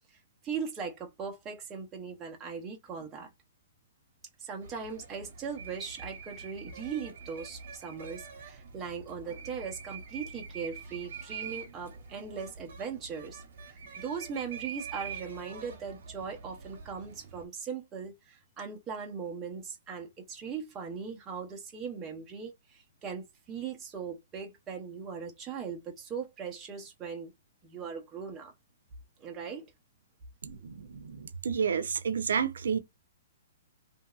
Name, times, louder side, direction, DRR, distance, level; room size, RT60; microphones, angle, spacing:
voice 1, 0.4-3.3 4.4-27.3 27.6-28.5 29.2-29.7, right 6 dB, 15° right, 0.7 m, -39 dB
sound 1, 4.6-17.4, right 6 dB, 55° right, 1.0 m, -45 dB
voice 2, 30.4-32.8, right 6 dB, 85° right, 0.5 m, -31 dB
2.9 x 2.6 x 2.3 m
hypercardioid pair, 165°, 0 cm